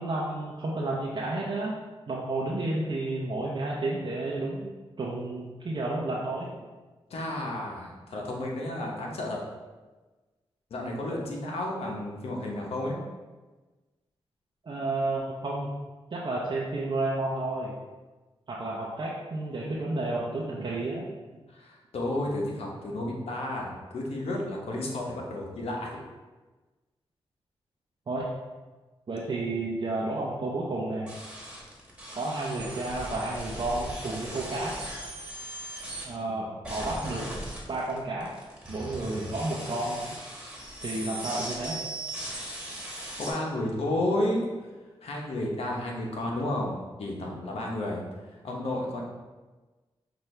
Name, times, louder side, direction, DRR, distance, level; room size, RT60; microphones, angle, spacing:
voice 1, 0.0-1.7 2.1-4.7 5.0-6.5 14.6-15.7 16.1-17.7 18.5-21.1 28.1-28.3 29.1-31.1 32.1-34.8 36.0-37.3 37.7-38.3 38.7-40.0 40.8-41.8, right 2 dB, 50° right, -5 dB, 0.7 m, -31 dB
voice 2, 7.1-9.4 10.7-13.0 21.5-26.0 43.2-44.5 45.0-48.0 48.4-49.0, left 1 dB, 75° left, -1 dB, 0.9 m, -32 dB
sound 1, 31.1-36.0 36.6-43.3, right 1 dB, 10° right, 1.5 m, -39 dB
5.8 x 2.6 x 3.3 m, 1.2 s
cardioid pair, 60°, 10 cm